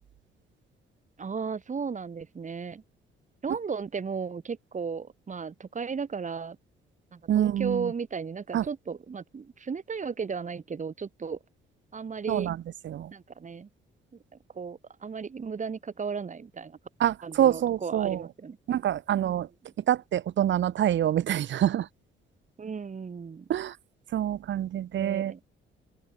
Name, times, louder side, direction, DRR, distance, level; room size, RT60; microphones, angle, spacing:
voice 1, 1.2-2.8 3.4-6.6 7.1-11.4 11.9-12.5 13.1-13.7 14.5-16.8 17.2-18.6 19.2-19.4 22.6-23.5 25.0-25.4, right 5 dB, 40° right, 5.1 m, -35 dB
voice 2, 7.3-7.9 8.5-8.6 12.3-12.6 12.8-13.1 17.0-18.2 18.7-19.5 19.9-21.9 23.5-23.8 24.1-25.3, right 11 dB, 70° right, 2.5 m, -26 dB
open air
cardioid pair, 90°, 20 cm